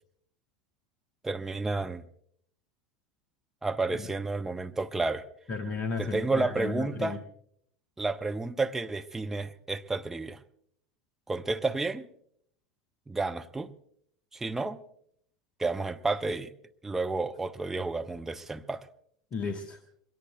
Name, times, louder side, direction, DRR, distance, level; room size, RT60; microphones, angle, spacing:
voice 1, 1.2-2.0 3.6-5.3 6.0-7.2 8.0-10.4 11.3-12.1 13.1-13.7 14.3-14.8 15.6-16.5 16.8-18.9, right 3 dB, 10° right, 0.7 m, -31 dB
voice 2, 5.5-7.2 19.3-19.8, left 4 dB, 35° left, 1.2 m, -34 dB
28.0 x 21.5 x 2.2 m
figure-of-eight pair, 80°, 4 cm